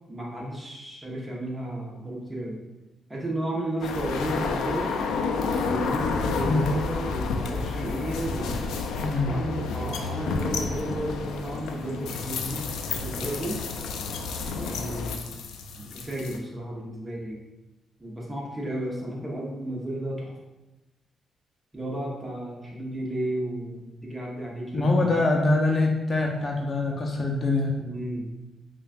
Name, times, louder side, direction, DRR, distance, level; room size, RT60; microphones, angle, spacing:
voice 1, 0.1-2.6 3.1-4.9 5.6-8.6 9.2-13.6 14.5-15.2 15.8-17.4 18.0-20.4 21.7-25.3 27.8-28.3, right 1 dB, 15° right, -3 dB, 1.1 m, -33 dB
sound 1, 3.8-16.4, left 4 dB, 90° left, 0.3 m, -30 dB
voice 2, 9.0-9.3 24.7-27.7, left 2 dB, 40° left, 0 dB, 0.6 m, -24 dB
5.3 x 2.4 x 2.6 m, 1.0 s
cardioid pair, 85°, 0 cm